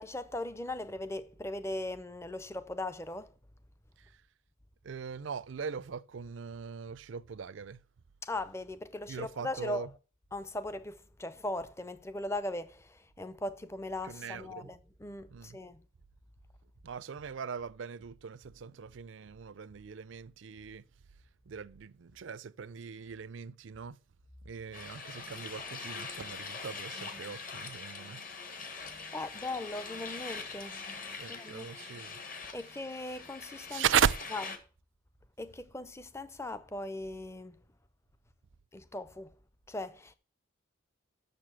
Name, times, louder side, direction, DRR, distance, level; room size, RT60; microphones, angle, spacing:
voice 1, 0.0-3.3 8.2-9.9 10.3-15.8 29.1-30.8 31.3-31.7 32.5-33.8 34.3-34.4 35.4-37.6 38.7-39.3 39.7-40.1, left 1 dB, 15° left, 0.5 m, -39 dB
voice 2, 4.8-7.8 9.1-9.9 14.0-14.7 15.3-15.6 16.8-20.8 21.5-24.0 24.4-28.2 31.1-32.2 33.7-34.3, right 7 dB, 65° right, 0.4 m, -37 dB
sound 1, 24.7-34.6, left 4 dB, 45° left, 1.5 m, -43 dB
6.7 x 6.7 x 7.4 m
head